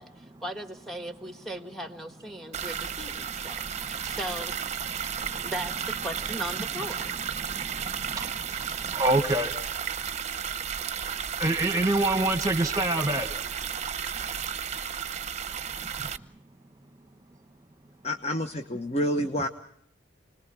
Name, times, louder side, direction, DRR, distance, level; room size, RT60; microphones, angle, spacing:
voice 1, 0.0-4.6 5.1-7.1, equal, ahead, 7 dB, 1.6 m, -38 dB
sound 1, 2.5-16.2, right 7 dB, 35° right, 0.8 m, -33 dB
voice 2, 8.8-9.5 11.4-13.3, right 2 dB, 20° right, 8 dB, 1.6 m, -25 dB
voice 3, 18.0-19.5, equal, 35° left, 7 dB, 1.0 m, -28 dB
29.0 x 20.5 x 6.0 m, 0.70 s
head